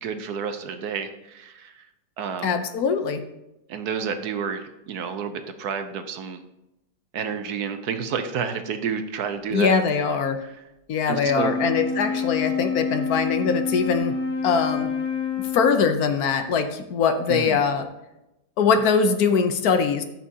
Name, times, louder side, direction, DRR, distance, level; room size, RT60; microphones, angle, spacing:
voice 1, 0.0-1.8 2.2-2.6 3.7-6.4 7.1-9.7 10.4-10.6 11.1-11.6 17.3-17.6, right 6 dB, 70° right, 8 dB, 1.3 m, -30 dB
voice 2, 2.4-3.2 9.5-10.4 10.9-14.1 14.4-14.9 15.5-17.9 18.6-20.0, left 5 dB, 65° left, 8 dB, 1.2 m, -22 dB
Wind instrument woodwind instrument, 11.2-16.0, left 5 dB, 45° left, 1.5 m, -27 dB
15.0 x 6.1 x 2.8 m, 0.93 s
omnidirectional pair, 1.8 m